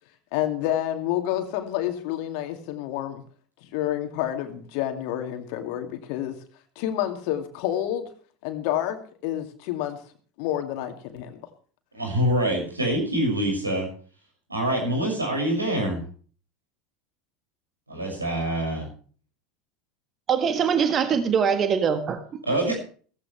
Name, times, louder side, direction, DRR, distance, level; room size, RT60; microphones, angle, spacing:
voice 1, 0.3-3.2 3.6-6.4 6.8-8.1 8.4-9.0 9.2-10.0 10.4-11.4, left 12 dB, 55° left, 6 dB, 2.4 m, -28 dB
voice 2, 11.9-13.9 14.5-16.0 17.9-18.9 22.5-22.8, right 1 dB, 85° right, 0 dB, 6.3 m, -25 dB
voice 3, 20.3-22.4, right 7 dB, 35° right, 8 dB, 1.6 m, -23 dB
16.0 x 15.5 x 3.4 m, 0.43 s
figure-of-eight pair, 75°, 0 cm